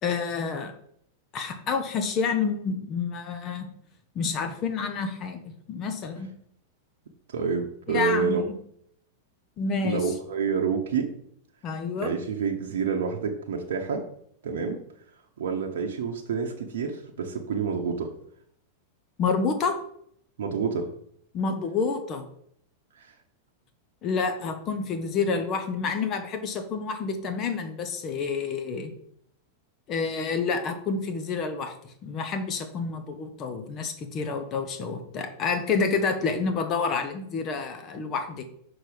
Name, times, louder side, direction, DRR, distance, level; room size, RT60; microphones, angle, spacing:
voice 1, 0.0-0.7 1.3-3.7 4.1-6.3 7.9-8.4 9.6-10.1 11.6-12.1 19.2-19.8 21.3-22.3 24.0-28.9 29.9-31.7 32.0-38.4, left 5 dB, 35° left, 7 dB, 1.0 m, -28 dB
voice 2, 7.3-8.4 9.8-11.1 12.0-14.0 14.4-14.8 15.4-18.1 20.4-20.9 23.0-23.1, right 5 dB, 70° right, 2 dB, 0.8 m, -28 dB
6.1 x 4.0 x 5.1 m, 0.69 s
hypercardioid pair, 100°, 0 cm